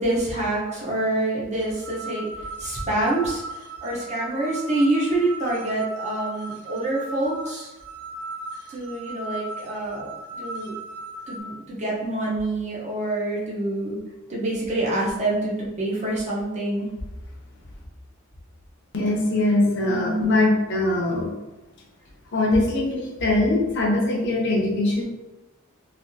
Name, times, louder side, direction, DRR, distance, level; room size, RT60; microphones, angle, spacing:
voice 1, 0.0-2.3 2.6-3.4 3.8-7.7 8.7-10.1 10.4-10.7 11.3-14.0 14.3-16.9 19.8-20.3, right 2 dB, 30° right, -5 dB, 0.9 m, -26 dB
sound 1, 1.6-11.4, right 2 dB, 90° right, 0.5 m, -37 dB
voice 2, 18.9-21.3 22.3-25.0, left 2 dB, 55° left, -1 dB, 0.7 m, -22 dB
3.4 x 2.5 x 2.7 m, 1.0 s
head